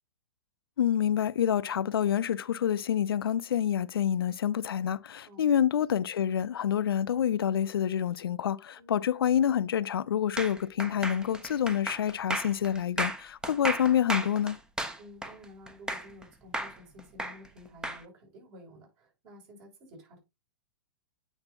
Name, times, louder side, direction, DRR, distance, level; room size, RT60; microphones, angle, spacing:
voice 1, 0.8-14.6, left 9 dB, 75° left, 0.5 m, -27 dB
voice 2, 5.3-5.6 8.8-9.0 15.0-20.2, left 1 dB, 45° right, 5.3 m, -52 dB
sound 1, 10.4-16.2 16.5-18.0, right 1 dB, 5° right, 0.9 m, -34 dB
9.0 x 5.7 x 2.6 m
hypercardioid pair, 110°, 12 cm